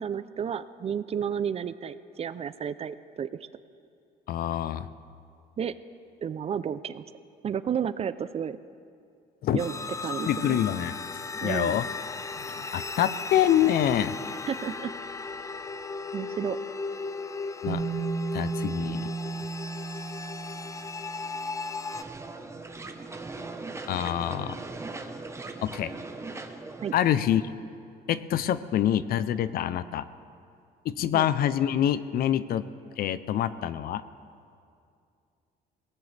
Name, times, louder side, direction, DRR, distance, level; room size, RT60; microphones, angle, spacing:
voice 1, 0.0-3.3 5.6-5.7 6.2-7.0 7.4-8.6 9.5-10.6 11.4-11.8 14.5-14.9 16.1-16.6 26.8-26.9 31.1-31.3, right 8 dB, 35° right, 14 dB, 0.5 m, -32 dB
voice 2, 4.3-4.9 9.4-9.6 10.2-11.9 12.4-14.1 17.6-17.8 18.3-19.1 23.9-24.6 25.6-25.9 26.9-27.5 28.1-30.1 30.8-32.7 33.0-34.0, left 11 dB, 60° left, 14 dB, 0.6 m, -26 dB
sound 1, 9.6-22.0, left 4 dB, 20° left, 0.5 m, -36 dB
Bass guitar, 17.7-21.6 22.7-22.8, right 5 dB, 60° right, 2.2 m, -34 dB
sound 2, 21.9-27.1, right 3 dB, 15° right, 1.0 m, -39 dB
22.0 x 18.0 x 3.4 m, 2.4 s
cardioid pair, 110°, 17 cm